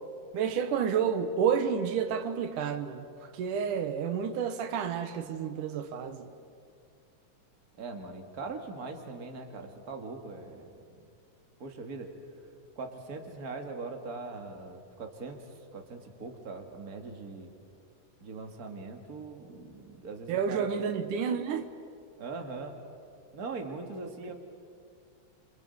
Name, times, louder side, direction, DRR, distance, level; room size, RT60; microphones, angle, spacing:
voice 1, 0.3-3.1 3.3-6.3 20.3-21.7, right 7 dB, 85° right, 2.8 m, -30 dB
voice 2, 7.8-11.0 11.6-12.1 12.8-17.5 18.2-20.7 22.2-22.8 23.3-24.3, right 3 dB, 30° right, 2.4 m, -41 dB
28.0 x 26.0 x 8.0 m
omnidirectional pair, 3.5 m